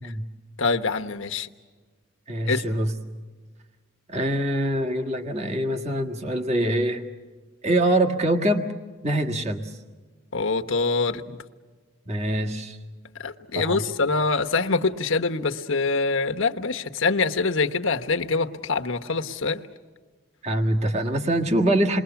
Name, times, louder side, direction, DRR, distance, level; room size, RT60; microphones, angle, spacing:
voice 1, 0.6-1.5 2.5-2.6 10.3-11.4 13.2-19.6, left 4 dB, 70° left, 5 dB, 1.2 m, -24 dB
voice 2, 2.3-2.9 4.1-7.0 7.6-8.7 9.0-9.7 12.1-12.8 13.5-13.9 20.4-22.0, right 1 dB, 30° right, 3 dB, 1.7 m, -24 dB
28.5 x 22.0 x 7.0 m, 1.4 s
head